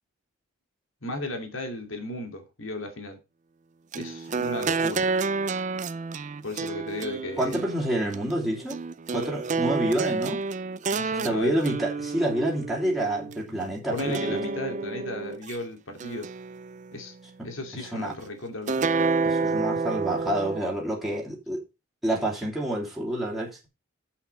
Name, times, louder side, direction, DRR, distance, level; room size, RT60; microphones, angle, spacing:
voice 1, 1.0-3.2 3.9-5.1 6.4-7.6 10.9-11.6 13.5-13.6 13.9-16.3 16.9-17.1 17.4-19.0, left 2 dB, 80° left, 2.6 m, -35 dB
sound 1, 3.9-13.4 14.0-15.6 16.0-17.1 18.7-20.6, right 4 dB, 35° right, 0.5 m, -29 dB
voice 2, 7.4-8.8 9.1-10.4 11.2-14.4 17.7-18.1 19.2-21.6 22.0-23.7, right 1 dB, ahead, 2.9 m, -28 dB
8.6 x 5.9 x 5.5 m
head